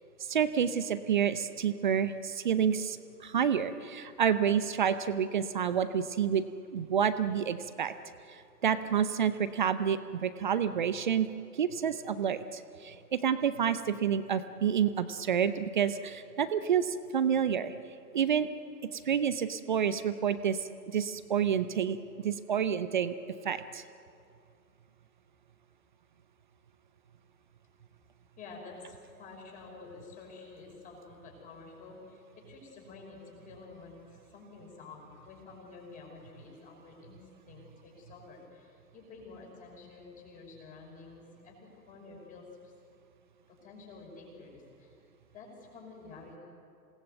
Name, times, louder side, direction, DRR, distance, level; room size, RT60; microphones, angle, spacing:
voice 1, 0.3-6.4 6.7-7.9 8.6-11.3 11.6-17.7 18.1-18.5 18.9-23.1 23.4-23.8, right 8 dB, 30° right, 13 dB, 0.7 m, -29 dB
voice 2, 28.4-42.7 43.5-45.0 45.3-46.4, left 3 dB, 15° left, 0 dB, 5.7 m, -50 dB
27.0 x 18.5 x 8.0 m, 2.4 s
figure-of-eight pair, 130°, 50 cm